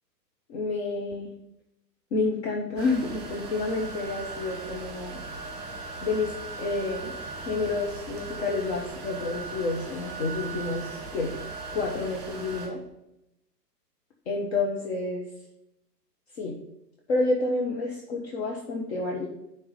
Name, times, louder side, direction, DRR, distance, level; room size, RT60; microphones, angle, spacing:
voice 1, 0.5-1.3 2.1-5.2 6.0-7.1 7.4-11.3 11.7-12.8 14.3-15.3 16.4-16.6 17.1-19.3, left 3 dB, 40° left, -2 dB, 1.2 m, -29 dB
sound 1, 2.8-12.7, right 4 dB, 20° right, 2.2 m, -38 dB
9.7 x 3.9 x 5.7 m, 0.85 s
figure-of-eight pair, 115°, 49 cm